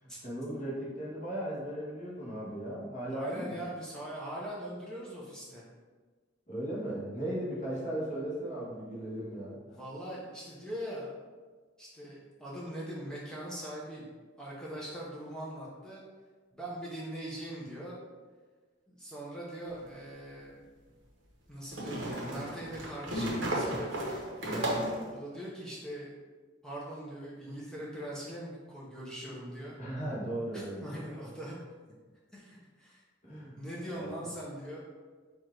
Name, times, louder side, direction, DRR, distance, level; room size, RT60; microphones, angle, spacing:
voice 1, 0.0-3.6 6.5-9.6 29.8-30.8 33.2-33.6 33.9-34.1, right 1 dB, 40° left, -6 dB, 1.4 m, -37 dB
voice 2, 3.1-5.6 9.7-11.1 11.8-14.1 14.4-16.0 16.5-18.0 18.9-20.6 21.5-24.0 25.1-26.1 26.6-29.8 30.5-31.5 32.3-33.0 33.6-34.8, right 1 dB, 5° left, -6 dB, 0.7 m, -41 dB
sound 1, 19.7-19.8 21.7-25.1, right 1 dB, 75° right, 1.0 m, -33 dB
4.6 x 2.5 x 4.5 m, 1.4 s
head